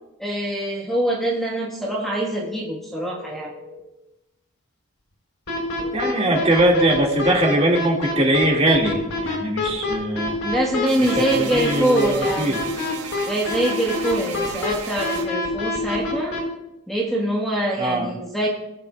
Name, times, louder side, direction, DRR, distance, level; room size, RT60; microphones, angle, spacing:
voice 1, 0.2-3.5 10.4-12.6 13.3-16.4 16.9-18.5, right 1 dB, ahead, -3 dB, 1.3 m, -24 dB
sound 1, 1.8-3.8 5.8-7.8, left 4 dB, 25° left, 2.4 m, -41 dB
sound 2, 5.5-16.4, left 3 dB, 65° left, 3.9 m, -26 dB
voice 2, 5.9-10.4 11.0-12.6 17.8-18.1, right 1 dB, 30° right, -1 dB, 2.0 m, -21 dB
sound 3, 10.9-15.3, right 6 dB, 80° right, 1.4 m, -35 dB
20.0 x 8.6 x 2.3 m, 0.94 s
head